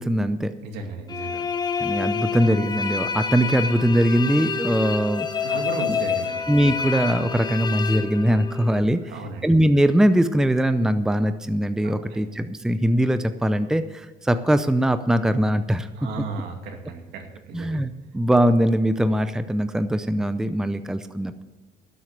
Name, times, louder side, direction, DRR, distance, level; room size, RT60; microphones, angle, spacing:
voice 1, 0.0-0.5 1.8-5.3 6.5-9.0 9.4-15.9 17.5-21.4, equal, 5° right, 11 dB, 0.6 m, -21 dB
voice 2, 0.6-1.4 5.4-6.5 9.0-9.5 11.8-12.2 15.9-17.8, right 4 dB, 80° right, 4 dB, 2.3 m, -35 dB
sound 1, 1.1-8.8, left 6 dB, 25° left, 1.0 m, -28 dB
12.5 x 7.8 x 7.6 m, 1.2 s
cardioid pair, 110°, 17 cm